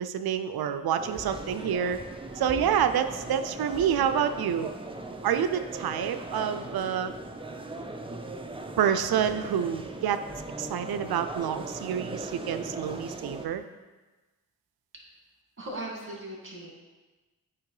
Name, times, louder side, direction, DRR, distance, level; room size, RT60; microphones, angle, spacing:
voice 1, 0.0-2.0 2.4-4.7 5.2-7.1 8.8-10.2 10.6-13.6, right 8 dB, 85° right, 10 dB, 0.5 m, -28 dB
sound 1, 1.0-13.5, right 2 dB, 15° right, 0.6 m, -39 dB
voice 2, 15.6-16.7, right 1 dB, 35° right, -2 dB, 2.2 m, -38 dB
8.2 x 3.0 x 4.8 m, 1.2 s
cardioid pair, 50°, 36 cm